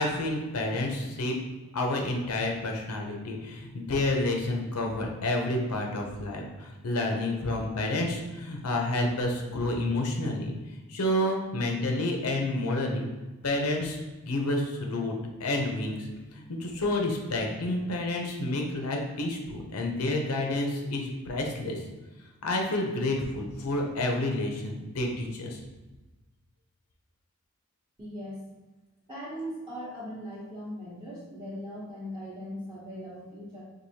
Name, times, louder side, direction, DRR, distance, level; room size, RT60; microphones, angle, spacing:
voice 1, 0.0-1.4 1.7-13.1 13.4-14.0 14.2-15.1 15.4-16.1 16.3-21.8 22.4-25.6, left 1 dB, 85° left, 1 dB, 0.7 m, -29 dB
voice 2, 28.0-28.4 29.1-33.6, equal, 20° right, -9 dB, 0.8 m, -39 dB
4.6 x 2.6 x 2.7 m, 1.1 s
head